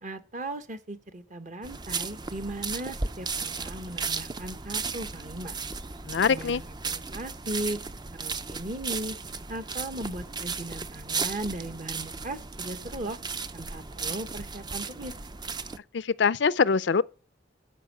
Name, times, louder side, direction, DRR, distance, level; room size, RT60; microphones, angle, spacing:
voice 1, 0.0-5.5 6.2-7.8 8.2-9.2 9.5-13.2 13.5-15.1, right 1 dB, 40° right, 1.1 m, -37 dB
sound 1, 1.6-15.8, right 4 dB, 25° right, 0.5 m, -35 dB
voice 2, 6.1-6.6 15.9-17.0, left 5 dB, 65° left, 0.5 m, -23 dB
13.0 x 5.4 x 8.3 m
head